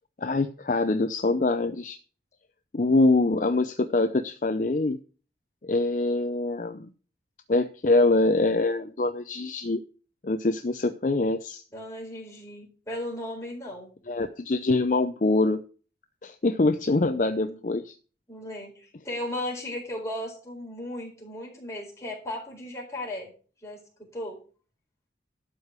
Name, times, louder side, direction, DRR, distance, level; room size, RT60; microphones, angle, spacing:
voice 1, 0.2-2.0 2.7-5.0 5.6-6.9 7.5-9.8 10.2-11.6 14.1-15.6 16.2-17.9, left 2 dB, 45° left, 9 dB, 0.6 m, -24 dB
voice 2, 11.7-13.9 17.2-17.6 18.3-23.3 23.6-24.4, left 1 dB, 15° left, -2 dB, 4.3 m, -36 dB
12.0 x 4.8 x 8.2 m, 0.39 s
head